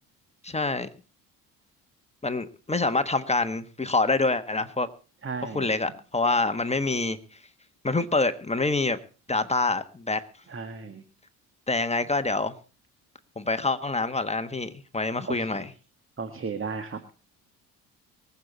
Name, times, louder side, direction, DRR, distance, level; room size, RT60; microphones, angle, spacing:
voice 1, 0.4-0.9 2.2-4.9 5.5-7.2 7.8-9.0 9.3-10.2 11.7-12.5 13.4-15.7, left 3 dB, 15° left, 9 dB, 1.4 m, -26 dB
voice 2, 5.2-5.7 10.5-11.0 15.2-15.6 16.2-17.0, right 5 dB, 30° right, 9 dB, 1.7 m, -34 dB
24.0 x 8.4 x 4.1 m, 0.35 s
hypercardioid pair, 55°, 43 cm